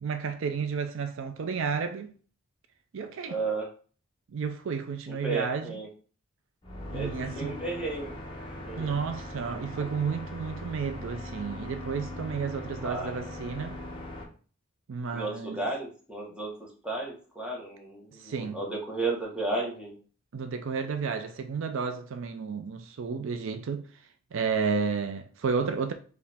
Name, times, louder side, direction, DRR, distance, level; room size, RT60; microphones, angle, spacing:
voice 1, 0.0-2.1 2.9-3.4 4.3-5.8 6.9-7.6 8.8-13.8 14.9-15.6 18.2-18.6 20.3-23.9 24.3-25.9, right 5 dB, 65° right, 0.4 m, -32 dB
voice 2, 3.3-3.7 5.1-5.9 6.9-7.1 7.3-8.9 12.8-13.3 15.1-19.9, right 3 dB, 5° right, 1.2 m, -34 dB
sound 1, 6.6-14.2, left 1 dB, 25° left, 1.0 m, -40 dB
4.6 x 3.2 x 3.5 m
head